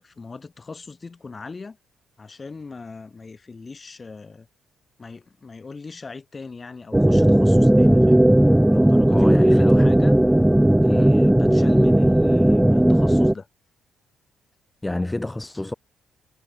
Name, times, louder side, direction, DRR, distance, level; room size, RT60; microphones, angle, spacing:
voice 1, 0.0-1.8 2.2-4.5 5.0-8.3 8.7-10.2 10.8-13.5, left 4 dB, 30° left, 7.6 m, -39 dB
sound 1, 6.9-13.3, right 1 dB, 5° right, 0.5 m, -16 dB
voice 2, 9.1-9.9 10.9-11.2 14.8-15.7, left 2 dB, 10° left, 2.0 m, -28 dB
cardioid pair, 90°, 0 cm